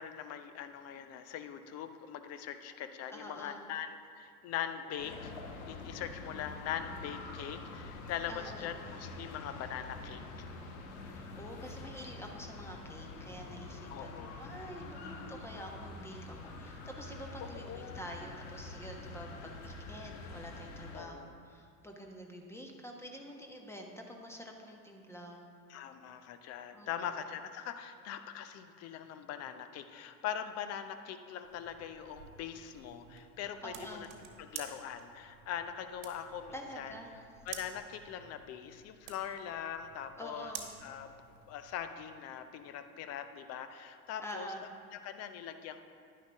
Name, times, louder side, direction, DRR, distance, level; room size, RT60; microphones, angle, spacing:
voice 1, 0.0-5.3 5.7-10.2 13.9-14.4 17.5-18.0 20.9-21.3 25.7-34.1 34.4-36.9 37.5-40.5 40.8-41.2 41.5-44.5 44.9-45.8, left 9 dB, 35° left, 9 dB, 0.8 m, -42 dB
voice 2, 3.1-3.6 8.3-8.7 11.0-21.2 21.4-25.5 26.7-27.1 33.6-34.1 36.5-37.1 40.2-40.7 44.2-44.6, equal, 5° left, 1 dB, 1.3 m, -47 dB
sound 1, 5.0-21.0, left 3 dB, 50° left, 1.3 m, -46 dB
sound 2, 31.4-41.8, right 7 dB, 45° right, 1.6 m, -51 dB
10.5 x 10.0 x 3.6 m, 2.3 s
figure-of-eight pair, 75°, 45 cm